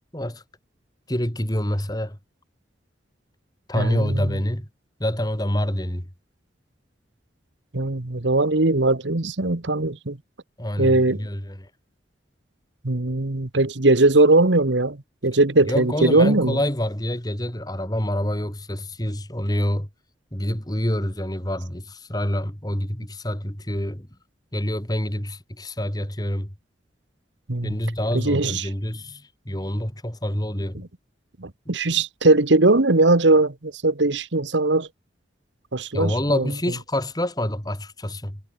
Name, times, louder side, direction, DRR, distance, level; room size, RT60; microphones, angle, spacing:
voice 1, 1.1-2.2 3.7-4.7 5.0-6.1 10.6-11.7 15.7-19.9 20.3-24.1 24.5-26.5 27.6-30.8 35.9-38.4, left 1 dB, 20° left, 3.4 m, -27 dB
voice 2, 3.7-4.4 7.7-10.2 10.8-11.2 12.8-15.0 15.2-16.6 27.5-27.7 28.1-28.7 31.4-34.9 35.7-36.5, right 2 dB, 75° right, 1.5 m, -20 dB
head